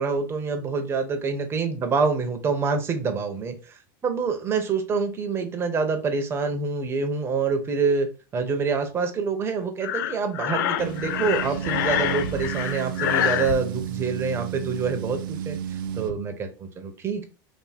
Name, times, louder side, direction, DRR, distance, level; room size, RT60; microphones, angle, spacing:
voice 1, 0.0-3.8 4.0-8.1 8.3-17.2, right 5 dB, 20° right, 5 dB, 0.9 m, -26 dB
Breathing, 9.8-13.6, left 11 dB, 70° left, 0.4 m, -26 dB
sound 1, 10.8-16.1, right 10 dB, 80° right, 0.7 m, -32 dB
3.6 x 2.6 x 4.3 m, 0.34 s
supercardioid pair, 140°, 11 cm